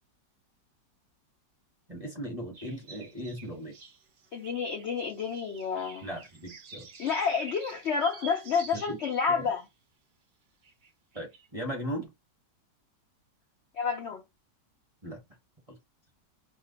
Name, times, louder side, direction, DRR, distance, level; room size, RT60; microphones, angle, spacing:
voice 1, 1.9-3.7 6.0-6.9 8.7-9.0 9.3-9.5 11.1-12.1 15.0-15.2 15.7-15.8, equal, 30° right, 0.7 m, -38 dB
sound 1, 2.5-9.2 9.7-9.8 10.6-10.9 11.1-11.5, right 6 dB, 70° right, 0.5 m, -49 dB
voice 2, 4.3-6.1 7.0-9.6 13.7-14.2, left 6 dB, 80° left, 0.6 m, -29 dB
2.9 x 2.1 x 3.8 m
omnidirectional pair, 1.9 m